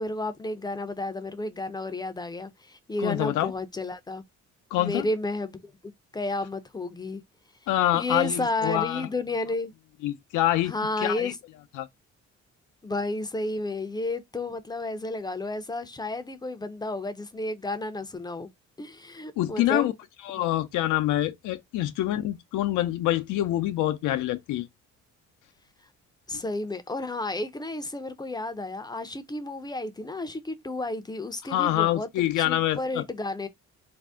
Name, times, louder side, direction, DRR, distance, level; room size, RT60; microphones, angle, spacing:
voice 1, 0.0-4.2 4.8-5.7 6.1-7.2 7.9-9.7 10.7-11.4 12.8-18.5 18.8-19.9 26.3-32.1 32.5-33.5, left 2 dB, 15° left, 0.5 m, -32 dB
voice 2, 3.0-3.5 4.7-5.1 7.7-9.1 10.0-10.7 11.0-11.3 11.8-11.9 19.4-19.9 20.2-24.7 31.5-33.0, left 14 dB, 85° left, 0.5 m, -26 dB
2.6 x 2.0 x 3.4 m
cardioid pair, 90°, 30 cm